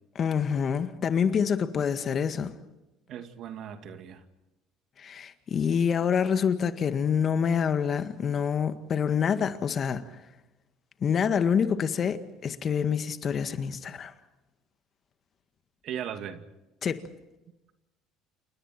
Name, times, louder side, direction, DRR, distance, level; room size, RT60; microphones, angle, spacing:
voice 1, 0.2-2.5 5.0-10.1 11.0-14.1 16.8-17.1, left 7 dB, 45° left, 1.8 m, -26 dB
voice 2, 3.1-4.2 15.8-16.4, right 9 dB, 60° right, 2.3 m, -37 dB
29.5 x 28.5 x 4.5 m
hypercardioid pair, 75°, 0 cm